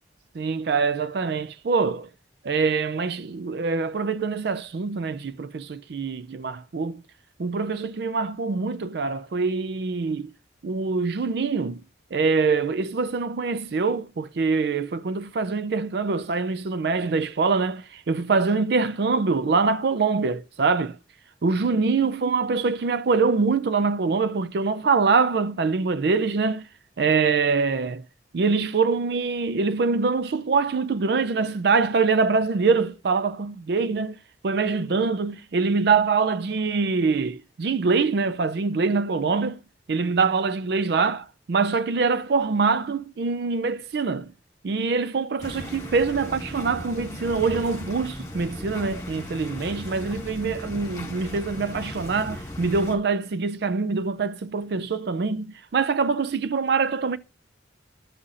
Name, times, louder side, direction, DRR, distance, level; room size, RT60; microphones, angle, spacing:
voice 1, 0.3-2.1 2.4-7.0 7.4-10.3 10.6-11.8 12.1-21.0 21.4-26.7 27.0-28.0 28.3-34.2 34.4-39.6 39.9-44.3 44.6-57.2, right 4 dB, 60° right, 0.4 m, -24 dB
sound 1, 45.4-53.0, left 1 dB, 20° left, 2.2 m, -37 dB
12.5 x 5.6 x 2.5 m
head